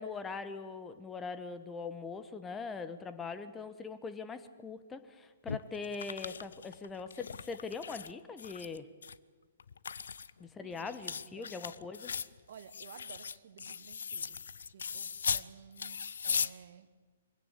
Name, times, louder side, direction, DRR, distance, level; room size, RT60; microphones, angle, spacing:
voice 1, 0.0-8.9 10.4-12.1, left 4 dB, 10° left, 11 dB, 1.0 m, -42 dB
sound 1, 5.5-8.1 8.4-9.2 9.6-15.5 15.8-16.5, left 6 dB, 60° left, 0.6 m, -38 dB
voice 2, 10.6-11.5 12.5-14.4 14.7-16.9, right 8 dB, 50° right, 13 dB, 1.3 m, -54 dB
23.0 x 16.5 x 8.6 m, 1.4 s
figure-of-eight pair, 120°, 0 cm